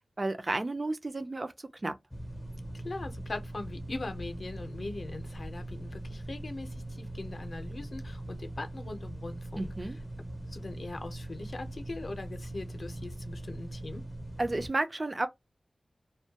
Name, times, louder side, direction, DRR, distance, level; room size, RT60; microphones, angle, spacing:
voice 1, 0.2-1.5 1.8-2.0 9.6-10.0 14.4-15.3, right 2 dB, 40° right, 0.4 m, -32 dB
sound 1, 2.1-14.7, right 1 dB, 15° left, 0.5 m, -41 dB
voice 2, 2.7-9.9 10.5-14.0, left 2 dB, 65° left, 0.6 m, -41 dB
2.2 x 2.1 x 2.8 m
wide cardioid pair, 85°, 0 cm